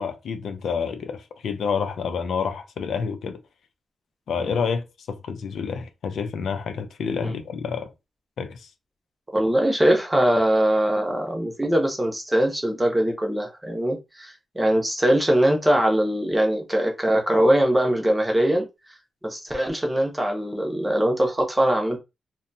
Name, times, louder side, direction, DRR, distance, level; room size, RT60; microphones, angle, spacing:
voice 1, 0.0-3.4 4.3-7.9 8.4-8.7, left 6 dB, 75° left, 0.4 m, -28 dB
voice 2, 9.3-18.7 19.2-22.0, right 1 dB, 10° right, 0.6 m, -22 dB
2.7 x 2.2 x 2.6 m
wide cardioid pair, 170°, 0 cm